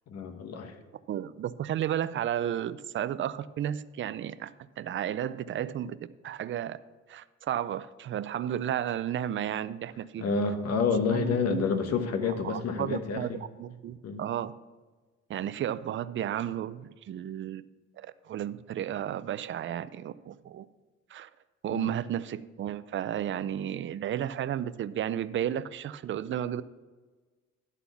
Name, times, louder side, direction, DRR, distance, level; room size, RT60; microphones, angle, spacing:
voice 1, 0.1-0.7 10.2-13.4 14.0-14.2 21.7-21.9, left 5 dB, 60° left, 8 dB, 1.1 m, -29 dB
voice 2, 1.1-6.8 7.1-10.2 11.1-12.0 12.3-13.3 13.6-14.5 15.3-17.6 18.0-20.7 21.1-21.3 21.6-26.6, right 10 dB, 45° right, 15 dB, 0.4 m, -33 dB
11.5 x 4.2 x 6.9 m, 1.3 s
cardioid pair, 110°, 29 cm